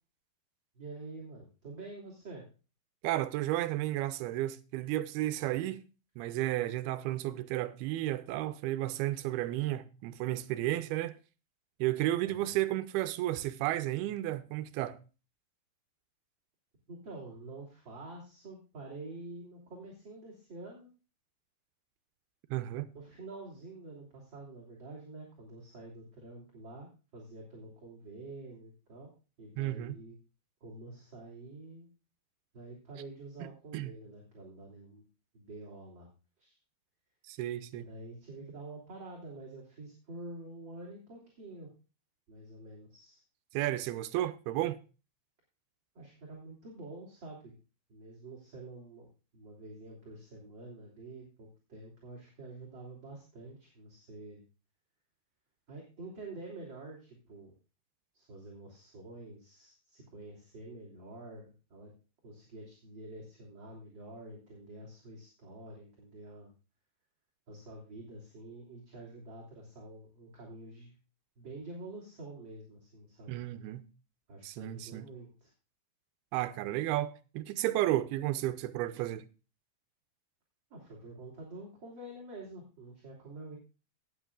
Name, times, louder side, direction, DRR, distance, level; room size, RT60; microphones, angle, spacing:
voice 1, 0.7-2.4 12.2-12.5 16.9-20.9 22.9-29.1 29.4-30.2 30.6-31.9 32.5-35.0 35.3-36.1 36.4-36.6 37.7-41.7 42.3-43.2 45.9-47.5 47.9-49.1 49.3-54.4 55.7-57.5 58.1-61.9 62.2-66.5 67.5-71.0 71.4-73.3 74.3-75.5 80.7-83.6, right 2 dB, 30° right, 3.1 m, -47 dB
voice 2, 3.0-5.9 6.2-11.2 11.8-15.0 22.5-22.9 29.6-29.9 33.7-33.9 37.3-37.9 43.5-44.8 73.3-73.8 74.4-75.1 76.3-79.2, right 15 dB, 85° right, 2.6 m, -33 dB
18.0 x 8.7 x 2.4 m
omnidirectional pair, 4.6 m